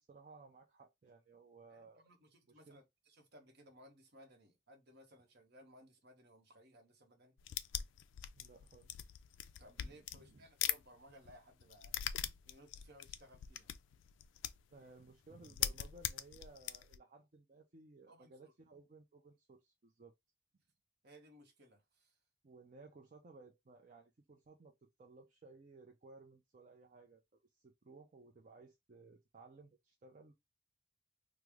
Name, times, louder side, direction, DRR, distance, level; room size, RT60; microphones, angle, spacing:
voice 1, 0.0-2.0 2.5-2.8 8.3-8.9 9.8-10.5 14.7-20.1 22.4-24.7 25.0-27.2 27.5-30.3, right 3 dB, 45° right, 0.5 m, -59 dB
voice 2, 1.7-7.4 9.6-12.0 12.4-13.7 18.1-18.5 21.0-22.2, equal, 60° right, 0.9 m, -61 dB
sound 1, 7.4-10.8 11.1-14.7 15.1-15.2 15.4-17.0, left 11 dB, 80° left, 0.3 m, -41 dB
3.2 x 2.0 x 3.4 m
head